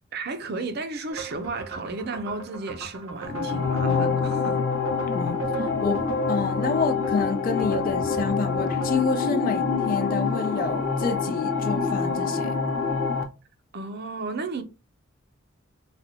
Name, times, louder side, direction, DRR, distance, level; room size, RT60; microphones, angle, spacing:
voice 1, 0.1-4.6 13.7-14.6, right 3 dB, 50° right, 0.5 m, -33 dB
sound 1, 1.1-8.9, right 5 dB, 85° right, 0.8 m, -38 dB
sound 2, 3.2-13.2, left 5 dB, 70° left, 0.7 m, -26 dB
voice 2, 5.1-12.6, left 4 dB, 45° left, 0.4 m, -28 dB
4.1 x 2.2 x 2.6 m
head